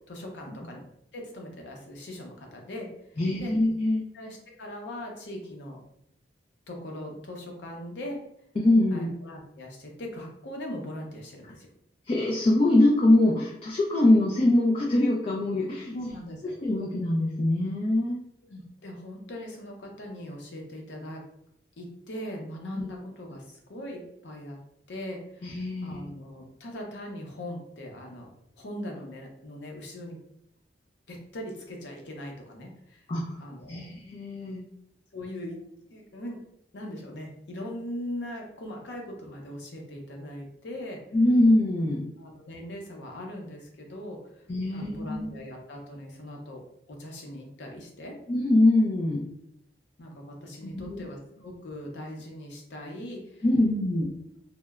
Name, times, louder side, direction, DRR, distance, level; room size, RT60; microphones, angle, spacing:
voice 1, 0.1-0.8 1.1-3.5 4.1-5.8 6.7-8.2 8.9-11.7 15.9-16.5 18.4-21.2 21.8-24.6 24.9-28.3 28.6-30.2 31.1-33.1 33.4-33.9 35.1-35.6 35.9-36.4 36.7-41.0 42.2-48.1 50.0-53.4, left 1 dB, 80° left, 1 dB, 0.6 m, -40 dB
voice 2, 3.2-4.0 8.6-9.1 12.1-15.9 16.6-18.2 25.4-26.1 33.1-33.4 33.7-34.6 41.1-42.1 44.5-45.3 48.3-49.2 50.6-51.1 53.4-54.1, left 1 dB, 30° left, -2 dB, 0.3 m, -23 dB
2.8 x 2.1 x 2.3 m, 0.75 s
head